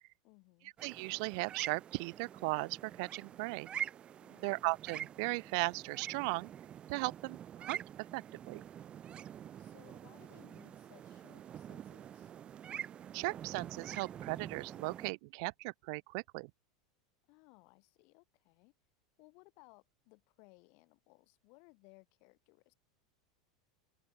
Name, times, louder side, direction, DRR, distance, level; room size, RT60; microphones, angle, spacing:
voice 1, 0.2-0.7 4.2-4.6 9.6-12.3 17.3-18.7 19.2-22.7, left 33 dB, 60° left, 7.8 m, -63 dB
sound 1, 0.8-15.1, right 9 dB, 35° right, 2.6 m, -46 dB
voice 2, 0.8-3.7 4.4-6.5 6.9-7.8 8.1-8.6 13.1-16.5, right 31 dB, 60° right, 0.6 m, -37 dB
hypercardioid pair, 100°, 3 cm